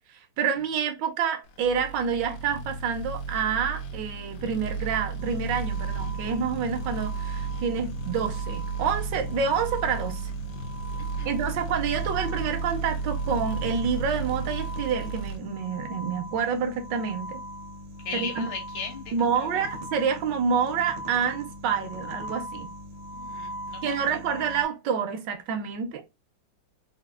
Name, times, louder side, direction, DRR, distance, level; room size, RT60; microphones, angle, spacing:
voice 1, 0.1-10.3 11.2-17.4 18.1-18.5 19.1-22.7 23.8-26.0, right 6 dB, 75° right, 1.1 m, -28 dB
sound 1, 1.6-15.4, right 4 dB, 70° left, 1.1 m, -33 dB
sound 2, 5.2-24.6, equal, 60° right, 0.6 m, -41 dB
voice 2, 11.0-11.3 18.1-19.6 23.1-24.2, left 5 dB, 90° left, 1.9 m, -38 dB
4.1 x 2.3 x 2.3 m
omnidirectional pair, 2.2 m